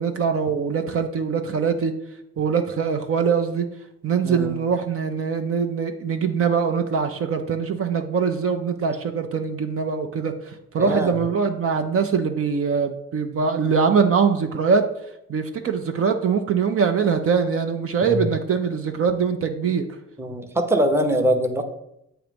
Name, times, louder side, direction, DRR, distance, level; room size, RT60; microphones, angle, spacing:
voice 1, 0.0-1.9 2.4-3.7 4.0-14.8 15.3-19.8, right 6 dB, 50° right, 6 dB, 0.6 m, -23 dB
voice 2, 10.8-11.2 18.0-18.2 20.2-21.6, right 1 dB, 10° right, 5 dB, 0.7 m, -22 dB
7.6 x 3.0 x 5.2 m, 0.82 s
cardioid pair, 90°, 30 cm